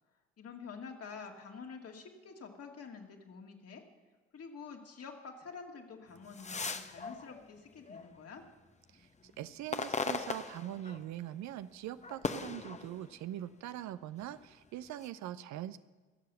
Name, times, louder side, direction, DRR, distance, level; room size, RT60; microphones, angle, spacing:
voice 1, 0.4-3.8 4.3-8.4, left 5 dB, 50° left, 2 dB, 2.3 m, -48 dB
sound 1, 6.1-8.5 9.0-11.3 11.6-13.5 14.1-15.1, left 4 dB, 20° left, 1.0 m, -40 dB
voice 2, 8.9-15.8, right 12 dB, 60° right, 13 dB, 0.7 m, -42 dB
22.5 x 7.6 x 6.9 m, 1.3 s
hypercardioid pair, 45°, 32 cm